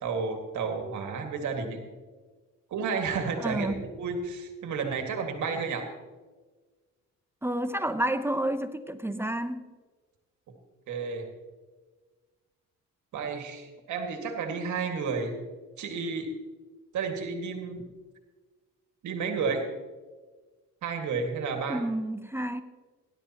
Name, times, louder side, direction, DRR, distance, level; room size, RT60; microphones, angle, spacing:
voice 1, 0.0-1.8 2.7-5.9 10.9-11.3 13.1-15.4 15.8-16.4 16.9-17.8 19.0-19.7 20.8-21.8, right 5 dB, 75° right, 4 dB, 2.0 m, -31 dB
voice 2, 3.4-3.8 7.4-9.7 21.7-22.6, right 1 dB, 10° right, 10 dB, 0.7 m, -30 dB
17.5 x 12.0 x 3.0 m, 1.3 s
cardioid pair, 90°, 30 cm